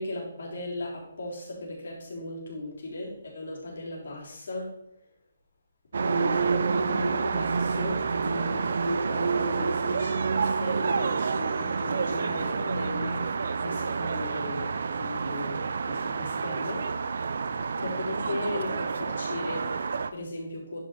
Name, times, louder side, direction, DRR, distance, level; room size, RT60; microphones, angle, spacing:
voice 1, 0.0-4.7 6.0-16.9 17.7-20.8, left 2 dB, 65° left, -4 dB, 3.8 m, -37 dB
sound 1, 5.9-20.1, right 5 dB, 65° right, 0.6 m, -28 dB
10.5 x 6.0 x 4.2 m, 0.81 s
hypercardioid pair, 160°, 0 cm